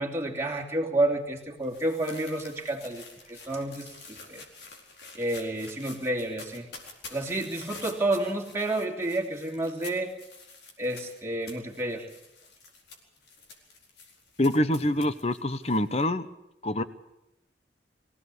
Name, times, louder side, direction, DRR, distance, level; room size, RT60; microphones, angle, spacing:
voice 1, 0.0-3.0 3.3-4.4 5.1-6.7 7.1-10.1 10.8-12.1, right 1 dB, 15° right, -1 dB, 3.2 m, -30 dB
sound 1, 1.0-16.0, left 3 dB, 65° left, 4.4 m, -48 dB
voice 2, 14.4-16.3 16.6-16.8, left 1 dB, 35° left, 12 dB, 1.1 m, -25 dB
24.0 x 16.5 x 8.5 m, 0.89 s
head